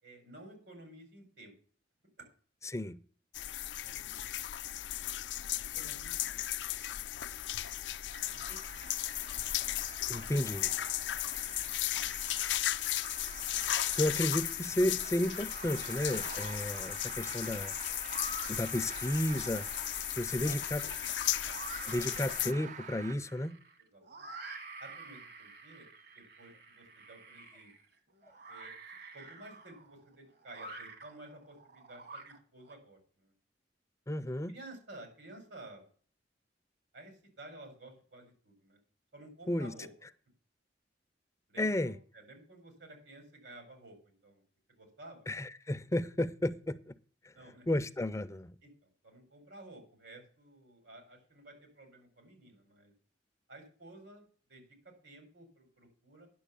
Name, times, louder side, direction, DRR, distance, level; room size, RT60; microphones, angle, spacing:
voice 1, 0.0-1.5 2.2-2.3 3.8-4.1 5.7-6.4 8.3-9.2 20.4-20.6 21.0-21.1 21.4-21.9 23.9-24.3 24.8-25.9 26.1-27.7 28.5-28.7 29.1-33.3 34.5-35.9 36.9-38.8 39.1-39.9 41.5-44.4 44.7-45.3 47.3-47.7 48.6-52.9 53.5-56.3, right 2 dB, 80° right, 4.7 m, -53 dB
voice 2, 2.6-3.0 10.1-10.7 13.9-17.7 18.5-19.7 20.2-20.8 21.9-23.6 34.1-34.5 39.5-39.7 41.6-42.0 45.3-47.0 47.2-47.3 47.7-48.5, left 1 dB, 15° left, 0.5 m, -32 dB
sound 1, 3.3-22.5, left 14 dB, 80° left, 0.4 m, -36 dB
sound 2, 8.1-23.2, right 6 dB, 45° right, 0.5 m, -48 dB
sound 3, 15.0-15.7 16.0-32.7, right 3 dB, 65° right, 2.1 m, -49 dB
10.0 x 6.9 x 6.8 m
head